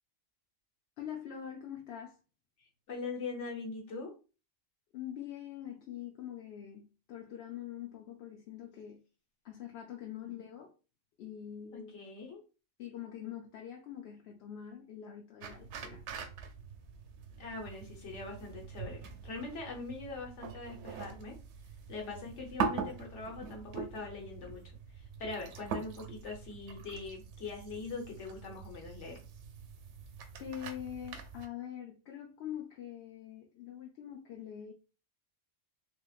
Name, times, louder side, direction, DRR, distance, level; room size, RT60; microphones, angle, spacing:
voice 1, 1.0-2.2 4.9-9.0 9.4-10.7 11.2-11.9 12.8-16.0 30.4-34.7, left 10 dB, 70° left, 0.8 m, -44 dB
voice 2, 2.6-4.1 10.2-10.4 11.7-12.4 17.4-21.4 21.9-24.6 25.0-29.2, left 4 dB, 85° left, 1.4 m, -42 dB
sound 1, 15.4-31.5, right 6 dB, 75° right, 0.9 m, -43 dB
3.6 x 2.9 x 2.4 m
omnidirectional pair, 1.2 m